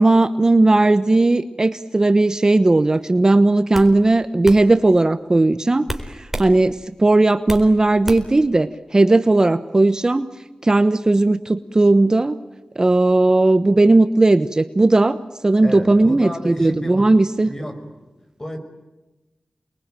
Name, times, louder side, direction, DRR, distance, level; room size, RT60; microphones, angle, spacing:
voice 1, 0.0-10.3 10.6-12.4 12.8-17.5, right 2 dB, 30° right, 11 dB, 1.0 m, -16 dB
sound 1, 2.9-3.2 3.7-3.9 4.4-4.6 5.9-6.5 6.9-7.7 8.1-8.4, right 1 dB, 10° right, 4.3 m, -29 dB
voice 2, 15.6-17.1 17.4-18.1 18.4-18.6, equal, 25° left, 6 dB, 5.6 m, -31 dB
28.5 x 22.5 x 9.1 m, 1.1 s
wide cardioid pair, 75°, 2 cm